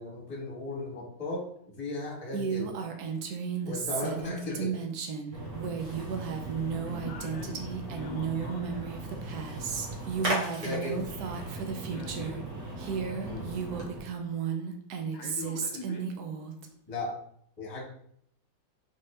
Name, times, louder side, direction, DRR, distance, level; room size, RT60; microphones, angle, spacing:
voice 1, 0.0-1.5 1.8-2.7 3.6-4.8 10.6-11.0 13.2-13.5 16.9-17.1 17.6-17.8, left 2 dB, 20° left, -2 dB, 1.1 m, -36 dB
Female speech woman speaking, 2.3-12.4 12.8-16.7, right 6 dB, 70° right, 1.0 m, -34 dB
Splash splatter, 5.3-14.0, right 1 dB, 40° right, 1.6 m, -38 dB
voice 2, 6.8-7.6 8.0-8.7 11.9-12.5 15.1-16.1, left 5 dB, 75° left, 2 dB, 1.2 m, -43 dB
4.2 x 3.6 x 3.2 m, 0.68 s
omnidirectional pair, 2.1 m